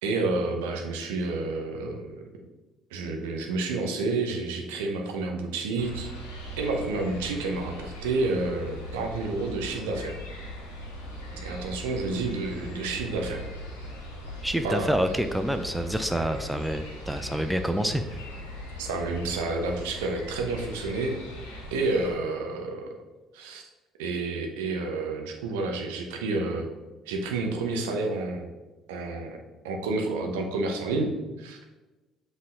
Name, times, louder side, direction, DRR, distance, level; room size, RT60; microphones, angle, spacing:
voice 1, 0.0-2.2 2.9-6.1 6.6-10.1 11.3-13.4 14.6-14.9 18.8-21.2 21.7-22.9 23.3-23.6 24.0-26.7 27.1-28.5 28.9-29.4 29.6-31.6, right 3 dB, 70° right, 2 dB, 0.9 m, -29 dB
sound 1, 5.8-22.1, equal, 75° left, 1.3 m, -40 dB
voice 2, 14.4-18.2, equal, 5° right, 8 dB, 0.5 m, -27 dB
7.4 x 4.0 x 3.8 m, 1.1 s
figure-of-eight pair, 50°, 0 cm